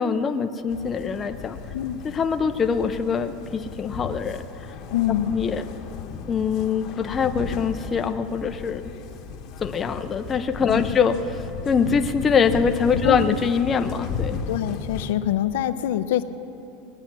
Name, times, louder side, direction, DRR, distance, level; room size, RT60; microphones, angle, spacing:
voice 1, 0.0-1.6 2.0-4.7 5.3-5.7 6.3-8.8 9.6-14.4, left 6 dB, 20° left, 7 dB, 0.5 m, -23 dB
sound 1, 0.7-15.1, left 6 dB, 40° left, 1.0 m, -35 dB
voice 2, 4.9-5.4 10.7-10.8 13.0-13.2 14.5-16.2, left 12 dB, 80° left, 11 dB, 0.6 m, -24 dB
20.5 x 8.6 x 6.1 m, 2.9 s
supercardioid pair, 160°, 0 cm